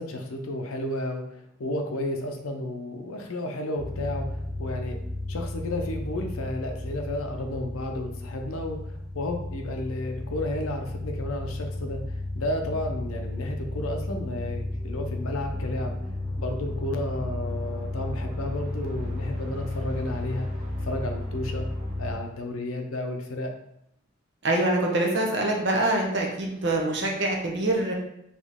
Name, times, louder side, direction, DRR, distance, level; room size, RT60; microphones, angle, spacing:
voice 1, 0.0-5.0 5.3-12.0 12.3-16.0 16.4-20.5 20.8-21.7 22.0-23.5, left 1 dB, 80° left, 4 dB, 0.7 m, -32 dB
sound 1, 3.8-22.1, left 1 dB, 30° right, 0.8 m, -33 dB
voice 2, 24.4-27.9, right 2 dB, 55° right, 0 dB, 0.9 m, -25 dB
4.1 x 3.0 x 3.6 m, 0.78 s
head